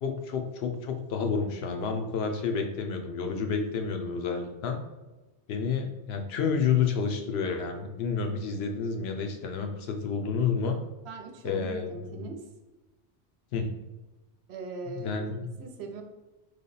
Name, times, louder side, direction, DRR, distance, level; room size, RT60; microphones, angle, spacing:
voice 1, 0.0-4.8 5.5-10.8 11.4-12.2 13.5-13.7 14.9-15.5, left 5 dB, 70° left, 4 dB, 0.8 m, -30 dB
voice 2, 11.0-12.5 14.5-15.2 15.5-16.0, right 3 dB, 75° right, 5 dB, 0.8 m, -40 dB
3.3 x 2.2 x 3.8 m, 1.1 s
omnidirectional pair, 1.1 m